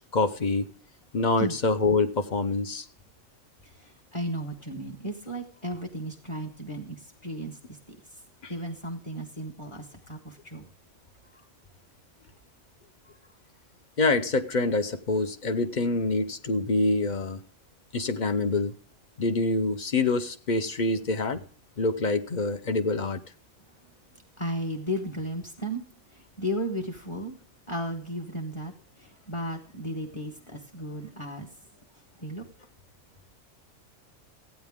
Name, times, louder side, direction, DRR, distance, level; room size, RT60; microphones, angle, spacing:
voice 1, 0.1-0.7 1.1-2.8 8.4-8.5 14.0-17.4 17.9-18.7 19.2-21.4 21.8-23.2, left 3 dB, 40° left, 8 dB, 0.9 m, -26 dB
voice 2, 3.6-8.0 8.5-10.7 24.4-25.8 26.1-27.3 27.7-31.5 32.2-32.4, equal, 25° left, -1 dB, 1.3 m, -35 dB
15.0 x 9.3 x 3.6 m, 0.43 s
omnidirectional pair, 1.3 m